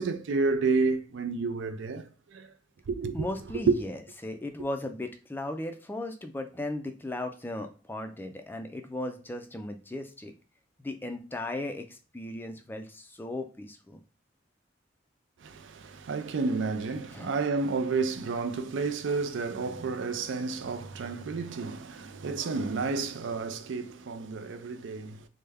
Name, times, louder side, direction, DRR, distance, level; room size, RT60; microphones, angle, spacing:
voice 1, 0.0-2.5 2.9-3.3 3.7-3.8 15.4-25.3, right 4 dB, 75° right, 0.4 m, -30 dB
voice 2, 3.1-10.3 10.8-14.0 17.1-17.3, left 1 dB, 10° left, 0.3 m, -36 dB
3.3 x 2.1 x 3.4 m
head